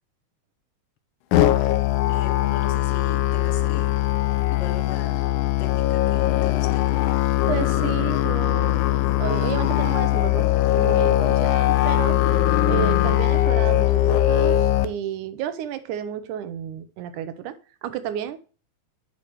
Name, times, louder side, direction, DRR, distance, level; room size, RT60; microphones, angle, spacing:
Musical instrument, 1.3-14.8, left 14 dB, 90° left, 2.2 m, -21 dB
voice 1, 2.1-4.0 4.5-5.2 5.6-6.9 8.9-9.2, left 7 dB, 70° left, 1.6 m, -39 dB
voice 2, 7.5-8.8 9.2-10.5 10.8-12.2 12.7-18.4, right 10 dB, 85° right, 2.2 m, -31 dB
10.0 x 5.4 x 3.0 m
omnidirectional pair, 3.5 m